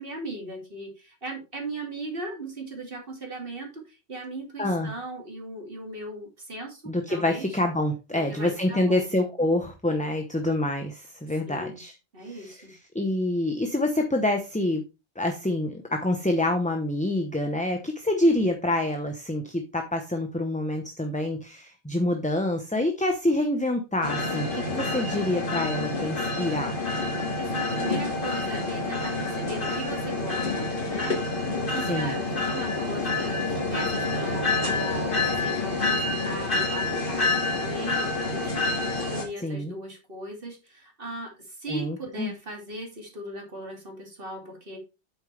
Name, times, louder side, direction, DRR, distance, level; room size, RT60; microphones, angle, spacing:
voice 1, 0.0-7.5 8.1-9.1 11.4-11.8 12.1-12.7 27.3-44.8, right 2 dB, 55° right, 1 dB, 2.8 m, -38 dB
voice 2, 4.6-4.9 6.9-11.9 12.3-14.9 15.2-26.8 31.9-32.2 39.4-39.7 41.7-42.3, left 1 dB, 5° left, 4 dB, 0.8 m, -27 dB
GE locomotive, 24.0-39.2, left 3 dB, 50° left, 2.2 m, -28 dB
8.8 x 7.4 x 3.3 m, 0.28 s
omnidirectional pair, 1.2 m